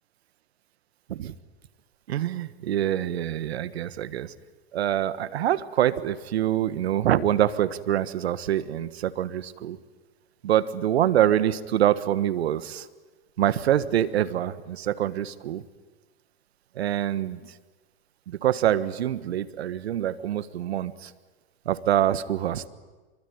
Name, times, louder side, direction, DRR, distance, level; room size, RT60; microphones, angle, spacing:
voice 1, 2.1-4.3 4.7-9.8 10.4-12.9 13.4-15.6 16.7-17.5 18.3-21.1 21.6-22.7, right 11 dB, 80° right, 15 dB, 1.4 m, -25 dB
25.5 x 23.5 x 9.5 m, 1.3 s
hypercardioid pair, 110°, 31 cm